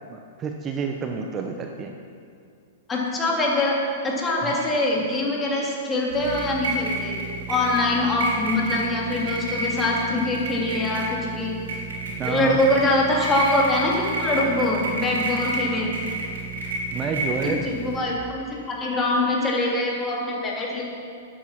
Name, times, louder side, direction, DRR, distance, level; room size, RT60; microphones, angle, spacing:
voice 1, 0.1-1.9 4.4-4.6 11.0-11.2 12.1-12.6 16.9-17.7, right 5 dB, 25° right, 3 dB, 0.9 m, -29 dB
voice 2, 2.9-3.8 4.0-7.2 7.5-11.5 12.2-15.9 17.4-20.8, left 2 dB, 15° left, -3 dB, 3.0 m, -24 dB
sound 1, 6.1-18.0, right 2 dB, 80° right, 3.5 m, -30 dB
12.5 x 9.2 x 6.0 m, 2.3 s
hypercardioid pair, 120°, 0 cm